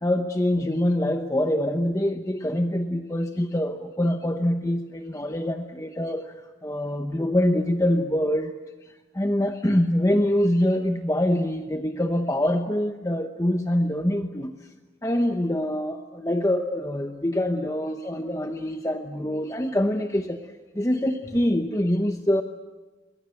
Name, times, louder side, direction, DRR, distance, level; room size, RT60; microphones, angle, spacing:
voice 1, 0.0-6.3 6.6-8.5 9.1-14.5 15.0-20.5 20.7-22.4, left 1 dB, 15° left, 6 dB, 0.9 m, -24 dB
23.0 x 22.5 x 7.8 m, 1.2 s
head